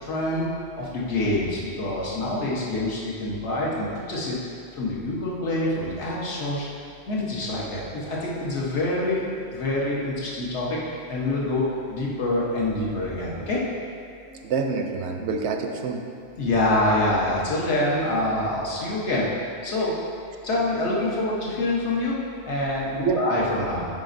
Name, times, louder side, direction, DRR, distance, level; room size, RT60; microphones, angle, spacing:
voice 1, 0.0-0.5 0.8-4.4 4.7-6.6 7.1-11.6 11.9-13.6 16.4-19.9 20.4-22.1 22.4-23.9, left 1 dB, 70° left, -5 dB, 1.4 m, -26 dB
voice 2, 14.3-16.0 23.0-23.3, right 5 dB, 70° right, 4 dB, 0.8 m, -27 dB
9.0 x 5.2 x 2.6 m, 2.3 s
omnidirectional pair, 1.2 m